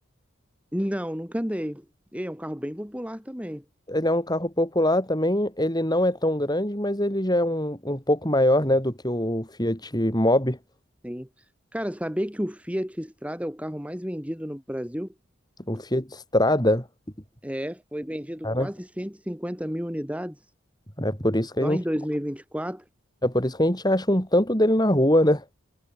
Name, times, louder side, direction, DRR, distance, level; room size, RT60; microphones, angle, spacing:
voice 1, 0.7-1.8 2.1-3.6 11.0-11.4 11.7-15.1 15.8-15.9 17.4-20.4 21.6-22.8, equal, 5° right, 4.3 m, -31 dB
voice 2, 3.9-10.6 15.7-16.8 18.4-18.7 21.0-21.8 23.2-25.4, left 1 dB, 20° left, 6.9 m, -23 dB
head